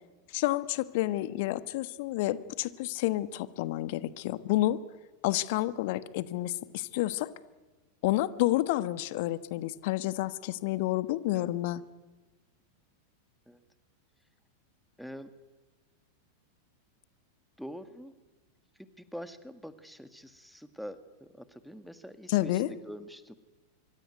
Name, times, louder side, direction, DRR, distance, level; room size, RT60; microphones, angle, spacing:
voice 1, 0.3-4.8 5.2-7.3 8.0-11.8 22.3-22.7, left 16 dB, 50° left, 15 dB, 1.3 m, -29 dB
voice 2, 15.0-15.3 17.6-18.1 18.8-23.3, equal, ahead, 11 dB, 1.9 m, -45 dB
25.5 x 24.5 x 9.3 m, 1.2 s
figure-of-eight pair, 90°, 0 cm